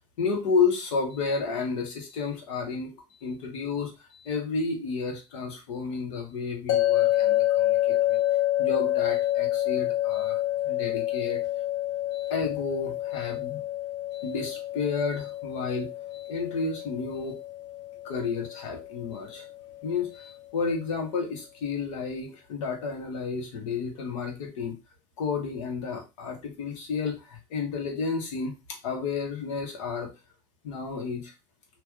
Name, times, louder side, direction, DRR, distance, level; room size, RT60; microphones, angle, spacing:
voice 1, 0.2-2.9 3.2-8.2 8.6-11.4 12.1-13.6 14.1-17.4 18.0-19.4 19.8-24.7 25.2-30.1 30.6-31.3, left 5 dB, 80° left, 3 dB, 1.3 m, -31 dB
sound 1, 6.7-19.8, left 14 dB, 65° left, 0.9 m, -28 dB
3.0 x 2.5 x 3.6 m, 0.26 s
supercardioid pair, 100°, 16 cm